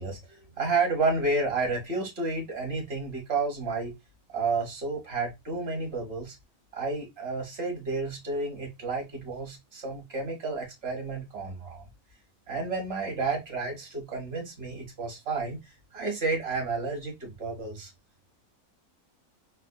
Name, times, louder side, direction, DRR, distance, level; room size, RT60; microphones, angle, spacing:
voice 1, 0.0-3.9 4.3-6.4 6.7-11.9 12.5-17.9, right 3 dB, 45° right, 1.5 m, -31 dB
4.2 x 2.5 x 2.2 m
omnidirectional pair, 1.5 m